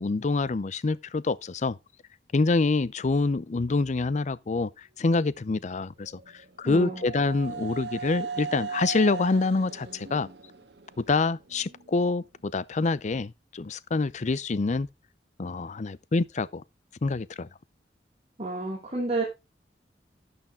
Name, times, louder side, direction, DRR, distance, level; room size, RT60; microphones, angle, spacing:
voice 1, 0.0-1.8 2.3-4.7 5.0-6.1 6.6-10.3 11.0-14.9 15.4-16.6 17.0-17.5, left 3 dB, 40° left, 0.5 m, -26 dB
sound 1, 6.0-11.9, right 5 dB, 75° right, 1.4 m, -38 dB
voice 2, 6.6-7.1 18.4-19.2, right 2 dB, 35° right, 2.6 m, -30 dB
11.5 x 6.8 x 3.6 m
head